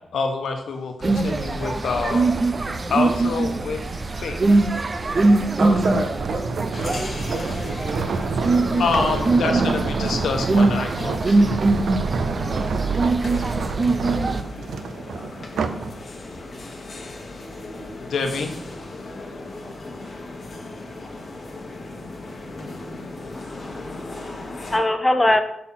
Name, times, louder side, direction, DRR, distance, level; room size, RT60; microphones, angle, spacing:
voice 1, 0.0-2.3 2.9-3.9 4.2-4.4 8.8-11.4 13.3-13.6 18.0-18.5, left 4 dB, 90° left, 4 dB, 1.0 m, -26 dB
sound 1, 1.0-14.4, right 3 dB, 35° right, 0.5 m, -22 dB
voice 2, 5.6-9.4 12.5-12.9, right 2 dB, 55° right, 1 dB, 1.5 m, -30 dB
sound 2, 5.7-15.9 16.4-16.6, right 4 dB, 85° right, 0.5 m, -28 dB
sound 3, 6.7-24.8, left 2 dB, 45° left, 1.4 m, -37 dB
voice 3, 23.3-25.4, left 1 dB, 15° left, 9 dB, 0.6 m, -23 dB
6.3 x 4.2 x 5.7 m, 0.75 s
wide cardioid pair, 120°, 0 cm